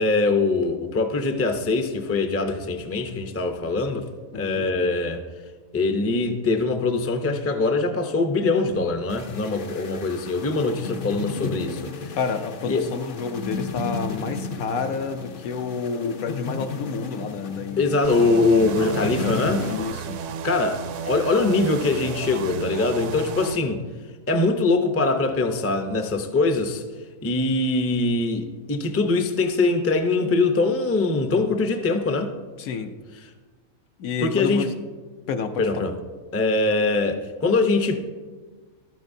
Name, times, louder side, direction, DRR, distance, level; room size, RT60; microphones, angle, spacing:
voice 1, 0.0-4.1 4.3-5.2 5.7-12.2 12.7-12.8 17.8-19.7 20.4-23.8 24.3-26.8 27.2-32.3 34.2-34.7 35.6-35.9 36.3-38.0, left 3 dB, 20° left, 5 dB, 0.4 m, -23 dB
voice 2, 4.3-4.7 12.1-17.9 18.2-20.2 32.6-32.9 34.0-34.7 35.3-35.9, left 5 dB, 75° left, 7 dB, 1.2 m, -30 dB
sound 1, 9.1-19.8, left 3 dB, 50° left, 0.7 m, -34 dB
sound 2, 18.0-23.6, right 7 dB, 65° right, 0.8 m, -33 dB
15.5 x 12.0 x 2.7 m, 1.4 s
omnidirectional pair, 1.5 m